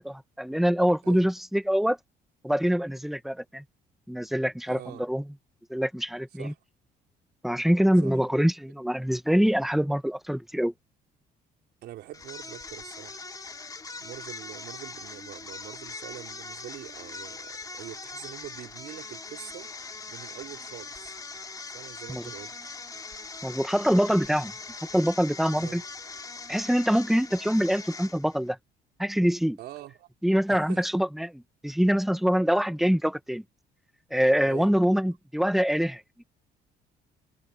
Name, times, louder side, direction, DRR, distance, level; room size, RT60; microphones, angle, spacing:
voice 1, 0.0-2.0 2.4-3.6 4.1-5.2 5.7-6.5 7.4-10.7 22.1-22.3 23.4-24.5 24.9-25.8 26.5-28.6 29.0-29.6 30.2-33.4 34.1-36.2, equal, ahead, 1.3 m, -25 dB
voice 2, 4.7-5.0 6.4-6.6 8.0-8.5 11.8-13.2 14.0-19.7 20.1-21.2 21.7-22.7 25.6-25.8 29.6-30.1 30.5-30.9 34.4-34.7, right 13 dB, 75° right, 3.6 m, -44 dB
sound 1, 12.1-28.5, left 4 dB, 20° left, 3.3 m, -41 dB
cardioid pair, 110°, 17 cm